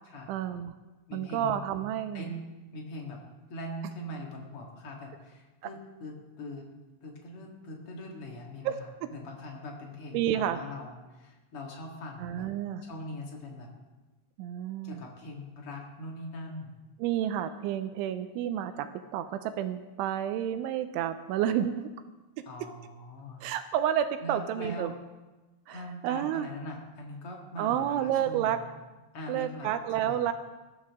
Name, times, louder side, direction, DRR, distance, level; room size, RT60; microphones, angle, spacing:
voice 1, 0.3-0.7 1.1-2.3 8.7-8.8 10.1-10.6 12.2-12.8 14.4-15.0 17.0-21.9 22.4-22.5 23.4-24.9 25.7-26.5 27.6-28.6 29.3-30.3, right 10 dB, 80° right, 10 dB, 2.9 m, -30 dB
voice 2, 1.1-1.6 2.1-2.4 2.7-3.2 3.5-6.6 7.0-12.5 12.8-13.7 14.8-16.7 22.4-23.4 24.2-25.0 25.7-28.6 29.1-30.2, left 1 dB, 55° left, 0 dB, 1.5 m, -42 dB
20.0 x 14.0 x 3.6 m, 1.2 s
omnidirectional pair, 5.6 m